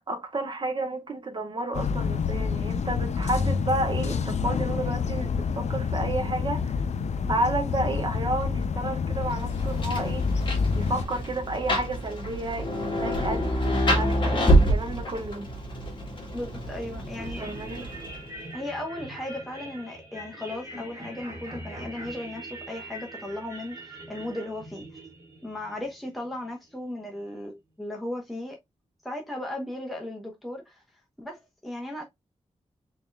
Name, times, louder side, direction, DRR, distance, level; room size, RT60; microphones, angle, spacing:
voice 1, 0.1-6.8 7.3-10.3 10.7-15.5 17.4-17.9, right 2 dB, 40° right, 1.1 m, -31 dB
sound 1, 1.7-11.0, left 5 dB, 70° left, 0.5 m, -28 dB
Rain, 9.3-18.4, equal, 40° left, 1.5 m, -27 dB
voice 2, 16.3-17.5 18.5-24.8 25.4-28.6 29.0-30.8 31.2-32.0, left 1 dB, ahead, 0.8 m, -36 dB
sound 2, 17.2-26.5, right 1 dB, 25° right, 1.6 m, -42 dB
4.1 x 3.6 x 2.2 m
wide cardioid pair, 140°, 12 cm